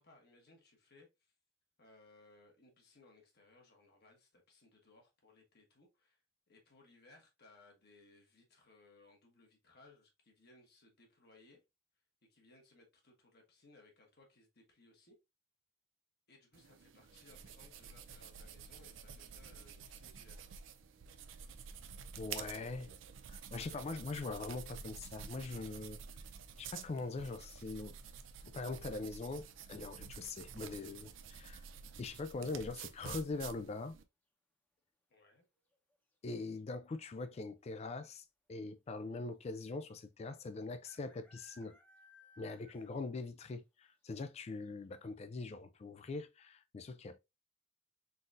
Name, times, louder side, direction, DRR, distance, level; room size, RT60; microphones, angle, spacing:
voice 1, 0.0-1.3 1.8-6.2 6.5-11.6 12.3-15.2 16.3-20.5 35.1-35.4, left 2 dB, 55° left, 1.4 m, -64 dB
sound 1, 16.5-34.0, right 7 dB, 80° right, 0.5 m, -50 dB
voice 2, 22.2-22.9 23.3-26.0 26.6-28.0 28.5-31.6 32.0-34.0 36.2-41.8 42.4-47.2, left 3 dB, 35° left, 0.3 m, -42 dB
sound 2, 33.3-33.8 35.6-36.0 36.2-36.3 36.5-37.1 37.8-37.9 38.2-38.3 39.8-39.9 40.8-43.1 43.5-43.6 44.1-44.2 44.6-44.7, left 2 dB, 10° left, 0.9 m, -64 dB
3.9 x 3.8 x 2.5 m
head